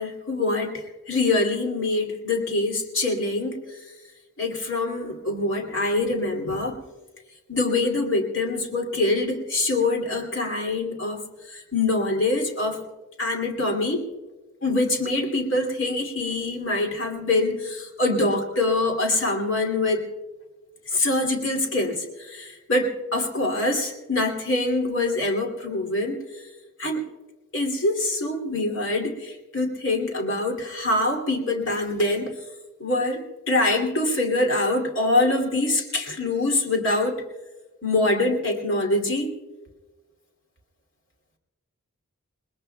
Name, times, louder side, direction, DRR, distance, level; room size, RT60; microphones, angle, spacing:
voice 1, 0.0-3.6 4.4-6.8 7.5-11.2 11.5-12.8 13.2-14.0 14.6-20.1 20.9-26.2 26.8-27.1 27.5-32.3 32.8-37.2 37.8-39.3, left 2 dB, 55° left, 2 dB, 2.5 m, -24 dB
30.0 x 20.0 x 2.2 m, 1.2 s
head